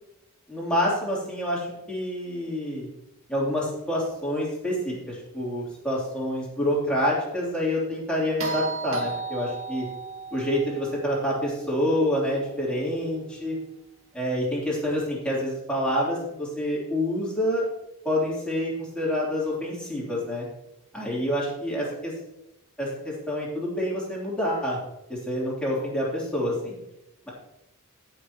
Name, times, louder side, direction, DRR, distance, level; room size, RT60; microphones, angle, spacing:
voice 1, 0.5-2.9 3.3-9.9 10.3-13.6 14.1-17.6 18.0-20.5 20.9-22.1 22.8-24.8 25.1-26.7, left 1 dB, 5° left, -6 dB, 3.1 m, -27 dB
sound 1, 8.4-12.7 14.9-15.0, right 4 dB, 65° right, 1.8 m, -36 dB
17.5 x 6.2 x 2.9 m, 0.88 s
head